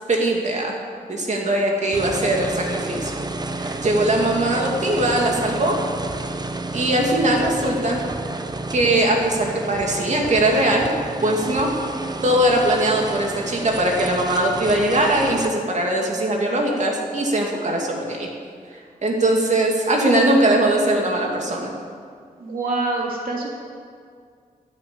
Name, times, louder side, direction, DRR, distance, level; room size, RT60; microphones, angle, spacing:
voice 1, 0.1-0.7 1.1-3.1 3.8-5.8 6.7-8.0 8.7-10.9 11.2-11.7 12.2-18.3 19.0-21.7, right 1 dB, 55° right, 0 dB, 2.7 m, -20 dB
sound 1, 1.9-15.5, right 2 dB, 30° right, 0.9 m, -30 dB
voice 2, 3.5-3.9 18.7-18.8 22.4-23.5, right 2 dB, 85° right, -2 dB, 2.9 m, -27 dB
13.0 x 9.9 x 8.7 m, 2.1 s
wide cardioid pair, 110°, 14 cm